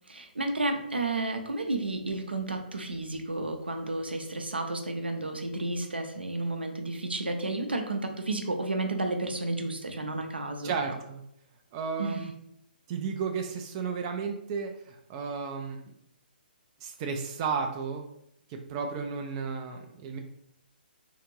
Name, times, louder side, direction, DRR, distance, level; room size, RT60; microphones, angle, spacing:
voice 1, 0.1-10.7 12.0-12.2, right 2 dB, 80° right, 5 dB, 0.6 m, -32 dB
voice 2, 10.6-11.2 11.7-12.3 12.9-15.8 16.8-18.1 18.5-20.2, right 5 dB, 30° right, 3 dB, 0.4 m, -33 dB
3.6 x 2.5 x 3.1 m, 0.78 s
figure-of-eight pair, 130°, 6 cm